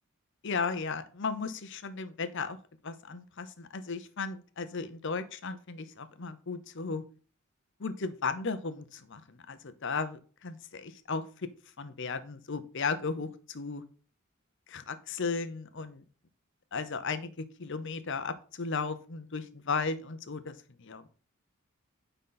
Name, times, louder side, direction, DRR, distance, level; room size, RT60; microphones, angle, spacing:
voice 1, 0.4-2.6 2.8-7.0 7.8-11.2 11.8-13.8 14.7-16.0 16.7-21.1, left 4 dB, 55° left, 12 dB, 0.7 m, -35 dB
9.5 x 4.0 x 3.9 m, 0.40 s
head